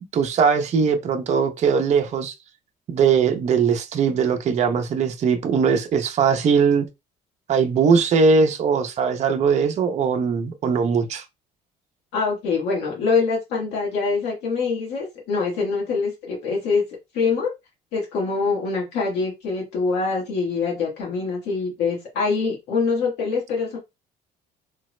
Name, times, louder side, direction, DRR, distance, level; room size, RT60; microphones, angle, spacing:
voice 1, 0.1-2.3 2.9-6.9 7.5-11.2, right 5 dB, 45° right, 0.5 m, -20 dB
voice 2, 12.1-16.8 17.1-17.5 17.9-23.8, left 4 dB, 85° left, 1.3 m, -24 dB
3.3 x 2.0 x 3.1 m
cardioid pair, 110°, 17 cm